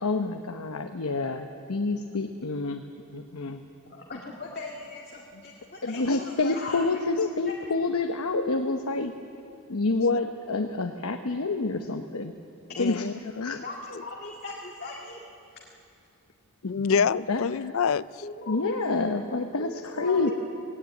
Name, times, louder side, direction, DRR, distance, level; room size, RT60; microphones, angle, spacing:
voice 1, 0.0-2.8 3.1-3.6 5.8-9.1 9.7-12.3 12.8-13.0 13.4-13.6 16.6-16.8 17.1-17.4 18.5-20.3, left 3 dB, 90° left, 5 dB, 1.0 m, -28 dB
voice 2, 3.9-6.8 7.5-7.6 12.7-12.9 13.5-15.2 18.2-19.1 19.5-20.3, left 2 dB, 45° left, -2 dB, 1.9 m, -39 dB
voice 3, 12.8-13.6 16.6-18.0, left 6 dB, 70° left, 18 dB, 0.4 m, -26 dB
18.5 x 16.5 x 9.5 m, 2.6 s
head